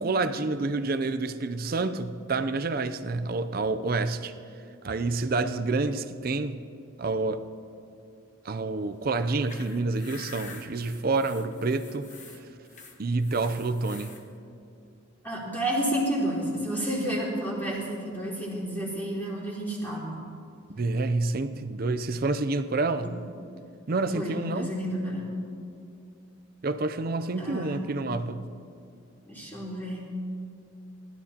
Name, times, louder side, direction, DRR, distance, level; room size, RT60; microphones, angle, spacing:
voice 1, 0.0-4.3 4.8-6.6 7.0-7.4 8.4-12.1 13.0-14.1 20.7-23.1 23.9-24.7 26.6-28.5, right 3 dB, 45° right, 10 dB, 0.5 m, -28 dB
sound 1, 9.2-14.2, left 4 dB, 35° left, 1.2 m, -47 dB
voice 2, 15.2-20.2 23.0-23.1 24.1-25.2 27.4-27.8 29.3-30.0, right 1 dB, 10° left, -7 dB, 3.4 m, -30 dB
20.0 x 12.5 x 2.9 m, 2.6 s
head